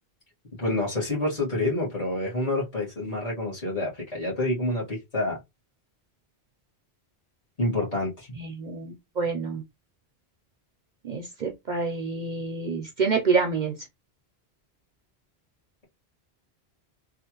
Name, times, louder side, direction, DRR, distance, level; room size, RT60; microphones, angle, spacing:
voice 1, 0.6-5.4 7.6-8.3, left 1 dB, 35° left, 1.7 m, -28 dB
voice 2, 8.4-9.6 11.0-13.7, right 4 dB, 55° right, 0.6 m, -27 dB
3.4 x 2.4 x 2.9 m
omnidirectional pair, 1.1 m